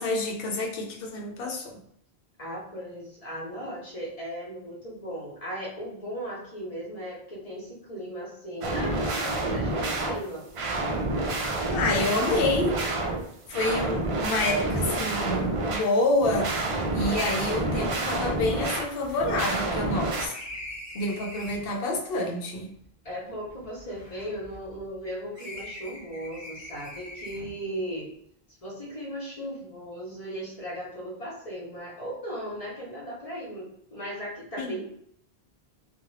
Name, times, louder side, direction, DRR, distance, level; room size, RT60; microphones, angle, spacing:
voice 1, 0.0-1.8 11.7-12.8 13.5-20.4 20.9-22.7 34.6-34.8, left 2 dB, 70° left, 1 dB, 0.8 m, -28 dB
voice 2, 2.4-10.4 23.0-28.1 28.6-34.9, equal, 40° left, -4 dB, 1.0 m, -37 dB
sound 1, 8.6-20.3, right 2 dB, 50° right, 0.4 m, -28 dB
sound 2, 18.9-21.8 22.6-25.0 25.3-27.7, left 1 dB, 30° right, 0.9 m, -44 dB
2.4 x 2.3 x 3.1 m, 0.68 s
omnidirectional pair, 1.0 m